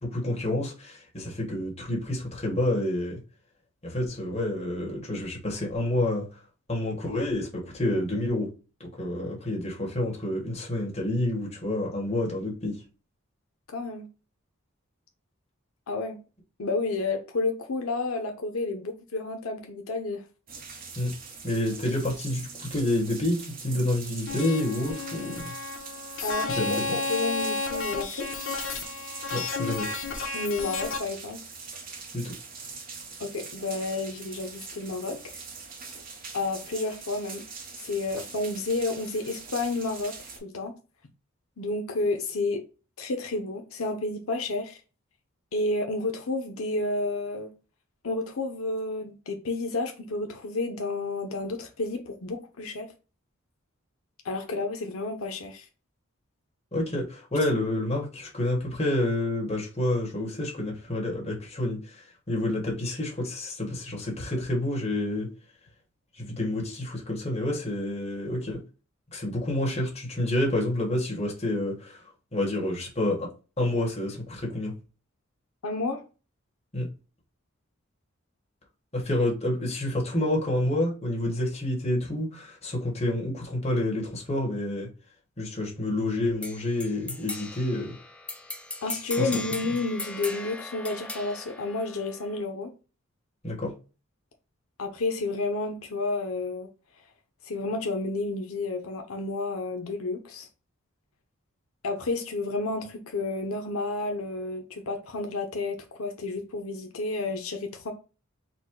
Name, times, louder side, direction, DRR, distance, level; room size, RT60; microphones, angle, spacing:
voice 1, 0.0-3.2 3.8-6.2 6.7-8.5 8.8-12.8 21.0-21.1 21.4-25.5 26.6-26.8 29.3-30.0 32.1-32.3 56.7-61.9 62.3-65.3 66.2-68.6 69.1-72.0 72.3-73.3 73.6-74.7 76.7-76.9 78.9-84.9 85.4-87.9 88.9-89.3 93.4-93.7, left 1 dB, 30° left, 1.5 m, -28 dB
voice 2, 13.7-14.1 15.9-16.2 16.6-20.3 26.2-28.3 30.3-31.4 33.2-35.4 36.3-37.4 37.8-40.1 40.4-40.8 41.6-42.6 43.0-44.8 45.5-47.5 48.0-52.9 54.2-55.7 75.6-76.0 88.8-92.7 94.8-96.7 97.4-100.5 101.8-107.9, left 3 dB, 85° left, 0.7 m, -31 dB
sound 1, 20.5-40.4, right 5 dB, 40° right, 0.9 m, -43 dB
sound 2, 24.3-31.0, left 3 dB, 65° left, 1.1 m, -32 dB
sound 3, 86.4-92.4, left 2 dB, 5° left, 0.3 m, -38 dB
4.2 x 2.2 x 4.5 m
head